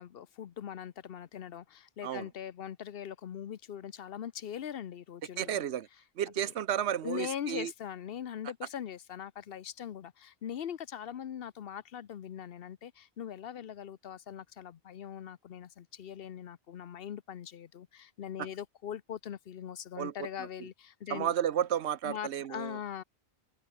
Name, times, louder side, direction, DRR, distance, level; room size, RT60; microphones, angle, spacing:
voice 1, 0.0-5.6 6.4-6.5 7.0-21.3 22.0-23.0, left 9 dB, 65° left, 0.9 m, -41 dB
voice 2, 5.4-5.9 6.2-7.7 20.0-20.1 21.1-22.8, right 10 dB, 85° right, 1.0 m, -32 dB
open air
omnidirectional pair, 1.1 m